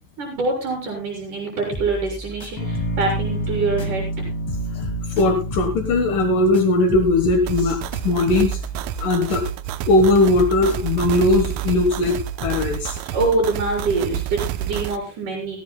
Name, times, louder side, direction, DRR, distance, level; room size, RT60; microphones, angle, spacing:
voice 1, 0.2-4.3 13.1-15.6, right 3 dB, 65° right, 0 dB, 5.4 m, -25 dB
sound 1, 1.7-4.2 4.5-9.7 10.0-12.8, right 1 dB, 20° left, 0.7 m, -35 dB
sound 2, 2.6-8.6, equal, 40° left, 4.0 m, -30 dB
voice 2, 5.1-7.8 8.0-8.6 9.0-9.4 9.9-13.0, left 2 dB, 70° left, 6 dB, 2.9 m, -19 dB
sound 3, 7.5-15.0, right 11 dB, 85° right, 2.5 m, -29 dB
16.5 x 16.0 x 2.2 m, 0.30 s
omnidirectional pair, 4.0 m